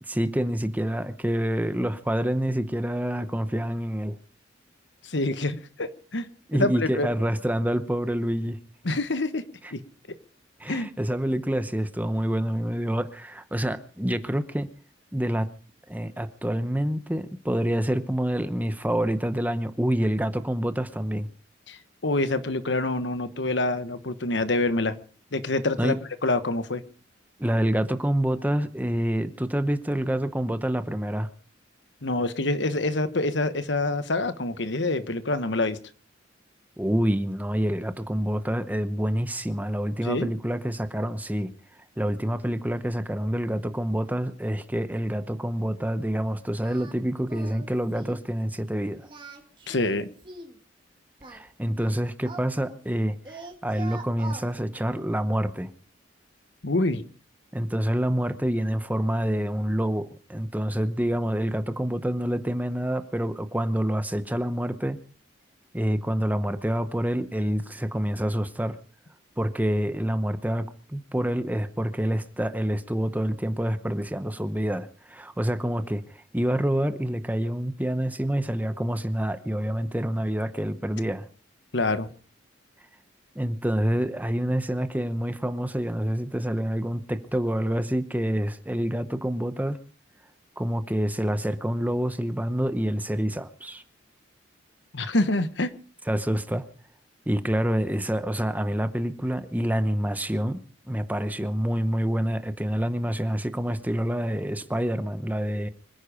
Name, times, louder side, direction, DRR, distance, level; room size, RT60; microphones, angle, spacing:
voice 1, 0.0-4.2 6.5-8.6 9.6-9.7 10.6-14.7 15.1-15.5 15.9-21.3 25.8-26.0 27.4-31.3 36.8-41.5 42.0-49.1 51.3-55.7 57.5-65.0 65.7-68.8 69.4-81.2 83.3-89.8 90.6-93.8 96.1-96.6 97.3-100.6 100.9-105.7, equal, 10° right, 11 dB, 0.9 m, -27 dB
voice 2, 5.0-7.1 8.8-9.4 9.7-9.8 10.7-10.9 21.7-24.9 25.3-26.0 26.2-26.8 32.0-35.8 40.0-40.3 49.7-50.1 56.6-57.0 81.7-82.1 94.9-95.7, left 2 dB, 65° left, 12 dB, 1.2 m, -26 dB
Singing, 46.6-47.0 47.3-47.7 47.9-48.2 49.0-50.6 51.2-53.0 53.2-54.5, right 3 dB, 25° right, 2.2 m, -43 dB
25.5 x 10.0 x 5.0 m, 0.41 s
head